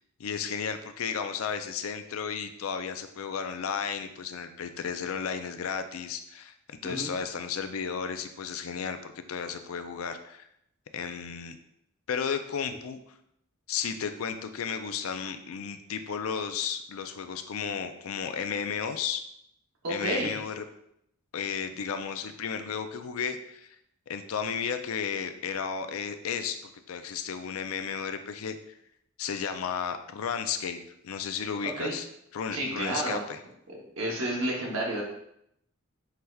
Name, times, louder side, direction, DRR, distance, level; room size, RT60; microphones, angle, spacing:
voice 1, 0.2-10.5 10.9-11.6 12.1-13.0 13.7-19.2 19.9-20.6 21.3-23.7 24.1-26.6 26.9-28.8 29.2-30.8 31.0-32.1 32.3-33.4, left 6 dB, 85° left, 8 dB, 0.4 m, -33 dB
voice 2, 19.8-20.3 31.6-31.9 32.5-33.2 34.0-35.0, right 1 dB, 70° right, -3 dB, 0.9 m, -30 dB
5.8 x 3.3 x 2.3 m, 0.75 s
head